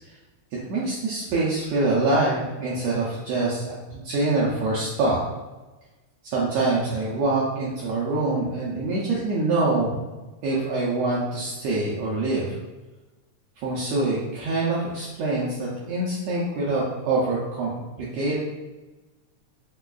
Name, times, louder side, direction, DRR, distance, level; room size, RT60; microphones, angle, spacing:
voice 1, 0.7-5.2 6.2-10.0 10.4-12.5 13.6-18.4, right 2 dB, 80° right, -6 dB, 1.5 m, -25 dB
4.8 x 2.2 x 2.3 m, 1.1 s
omnidirectional pair, 3.3 m